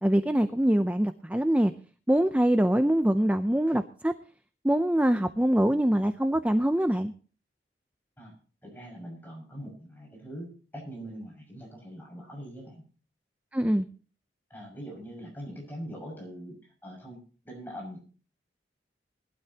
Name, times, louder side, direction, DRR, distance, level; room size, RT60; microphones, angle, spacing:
voice 1, 0.0-1.7 2.1-4.1 4.6-7.1 13.5-13.9, right 1 dB, 10° right, 9 dB, 0.5 m, -24 dB
voice 2, 8.6-12.8 14.5-16.5 16.8-17.2 17.4-18.0, equal, 10° left, -1 dB, 6.0 m, -42 dB
21.0 x 12.5 x 2.9 m, 0.38 s
head